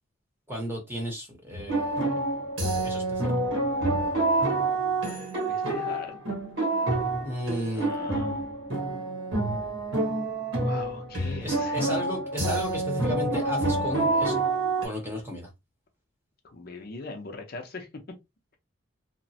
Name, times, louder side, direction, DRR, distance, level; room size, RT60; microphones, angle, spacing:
voice 1, 0.5-2.1 2.8-3.3 7.2-7.9 11.4-14.4 14.8-15.5, equal, 10° right, 0.8 m, -34 dB
sound 1, 1.5-14.9, right 2 dB, 70° right, 1.1 m, -27 dB
voice 2, 5.5-6.2 7.7-8.4 10.6-11.8 16.4-18.0, left 3 dB, 50° left, 0.6 m, -40 dB
2.9 x 2.0 x 2.7 m
head